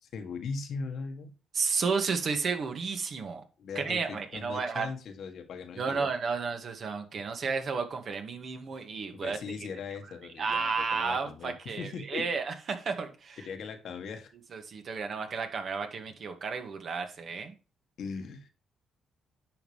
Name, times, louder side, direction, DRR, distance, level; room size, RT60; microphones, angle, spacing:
voice 1, 0.0-1.3 3.6-6.1 9.1-12.2 13.4-14.3 18.0-18.5, left 5 dB, 70° left, 6 dB, 1.5 m, -39 dB
voice 2, 1.5-3.4 3.8-4.9 5.8-9.4 10.4-13.4 14.5-17.5, right 5 dB, 55° right, 6 dB, 2.0 m, -32 dB
10.0 x 5.7 x 3.3 m, 0.34 s
cardioid pair, 95°, 0 cm